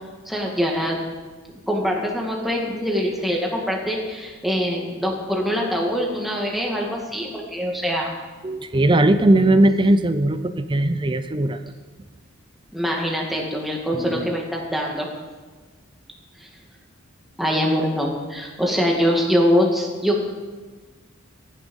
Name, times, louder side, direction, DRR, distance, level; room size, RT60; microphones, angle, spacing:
voice 1, 0.3-1.0 1.5-8.1 9.3-9.6 12.7-15.1 16.4-16.5 17.4-20.2, equal, ahead, -1 dB, 2.1 m, -23 dB
voice 2, 8.4-11.6 13.9-14.3, right 1 dB, 25° right, 11 dB, 0.5 m, -19 dB
14.0 x 9.9 x 5.4 m, 1.4 s
head